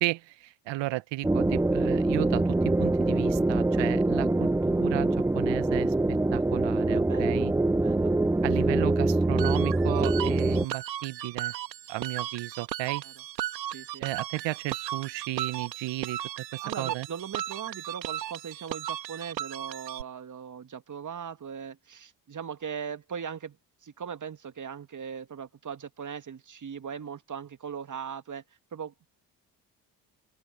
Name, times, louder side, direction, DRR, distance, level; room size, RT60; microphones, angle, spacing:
voice 1, 0.0-7.5 8.4-11.5 11.9-13.0 14.0-16.2 16.5-17.1, right 18 dB, 60° right, 1.6 m, -34 dB
sound 1, 1.2-10.7, right 2 dB, 5° right, 0.6 m, -24 dB
voice 2, 6.9-7.4 7.8-8.1 13.0-13.1 13.7-14.1 16.6-23.6 23.8-28.4 28.7-29.1, right 7 dB, 35° right, 2.1 m, -39 dB
sound 2, 9.4-20.0, right 12 dB, 85° right, 1.8 m, -36 dB
open air
figure-of-eight pair, 45°, 49 cm